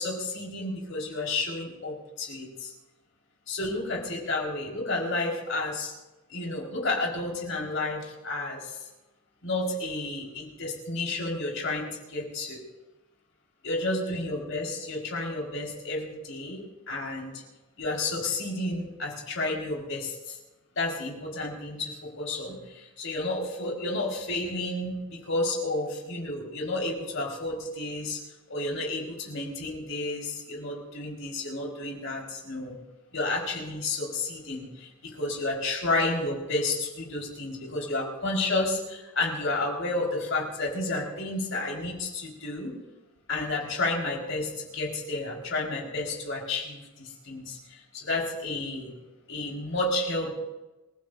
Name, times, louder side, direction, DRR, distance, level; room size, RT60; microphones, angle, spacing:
voice 1, 0.0-2.7 3.5-5.9 6.3-8.8 9.4-12.6 13.6-17.3 17.8-20.4 20.8-25.0 25.2-28.2 28.5-32.8 33.1-42.7 43.3-48.9 49.3-50.3, left 2 dB, 65° left, -1 dB, 4.5 m, -31 dB
28.0 x 15.5 x 2.6 m, 1.1 s
head